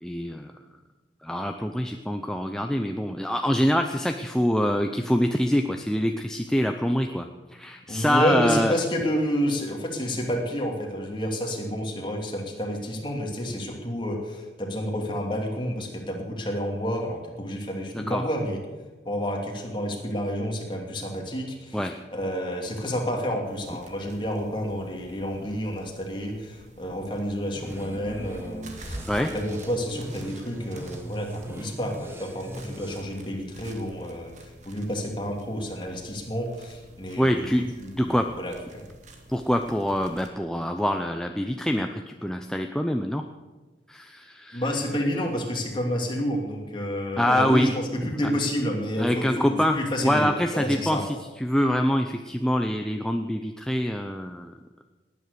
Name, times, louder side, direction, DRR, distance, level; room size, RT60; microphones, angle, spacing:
voice 1, 0.0-0.5 1.2-8.7 17.9-18.2 21.7-22.0 29.1-29.3 37.2-37.6 38.0-38.3 39.3-43.2 43.9-44.6 47.2-47.7 49.0-54.5, equal, 5° left, 5 dB, 0.6 m, -25 dB
voice 2, 7.9-18.6 19.0-37.5 37.8-38.9 44.5-50.3 50.5-51.0, equal, 25° left, 1 dB, 2.6 m, -29 dB
sound 1, 23.4-40.3, right 1 dB, 40° right, 1.9 m, -47 dB
sound 2, 27.6-33.0, right 1 dB, 15° right, 1.2 m, -40 dB
18.5 x 9.6 x 6.8 m, 1.3 s
head